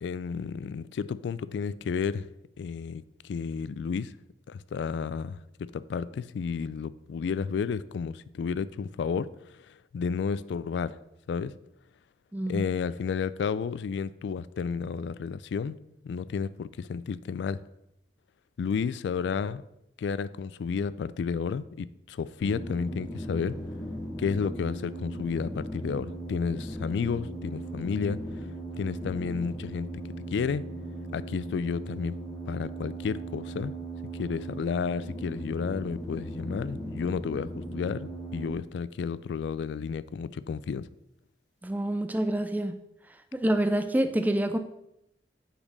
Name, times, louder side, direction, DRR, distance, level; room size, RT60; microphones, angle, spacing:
voice 1, 0.0-2.3 2.6-4.1 4.5-9.3 9.7-11.0 11.3-11.5 12.5-15.8 16.0-17.6 18.6-19.6 20.0-23.6 24.2-28.2 28.7-29.9 30.3-30.6 31.1-32.2 32.5-33.7 34.2-40.9, left 6 dB, 80° left, 17 dB, 0.3 m, -31 dB
voice 2, 12.3-12.6 41.6-42.7 43.3-44.6, right 1 dB, 10° right, 9 dB, 0.3 m, -27 dB
sound 1, 22.4-38.5, right 1 dB, 20° left, 1.7 m, -38 dB
5.8 x 4.2 x 5.3 m, 0.82 s
head